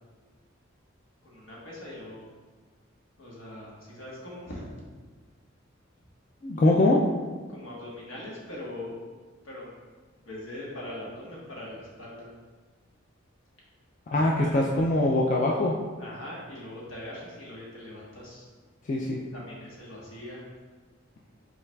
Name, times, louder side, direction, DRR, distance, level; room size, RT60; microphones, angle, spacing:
voice 1, 1.2-2.3 3.2-4.8 7.5-8.9 9.4-9.9 10.2-12.3 14.1-14.8 16.0-18.5 19.3-20.4, left 1 dB, 75° left, -5 dB, 1.3 m, -41 dB
voice 2, 6.4-7.0 14.1-15.8 18.9-19.2, left 2 dB, 40° left, -2 dB, 0.3 m, -23 dB
5.6 x 3.9 x 2.3 m, 1.4 s
head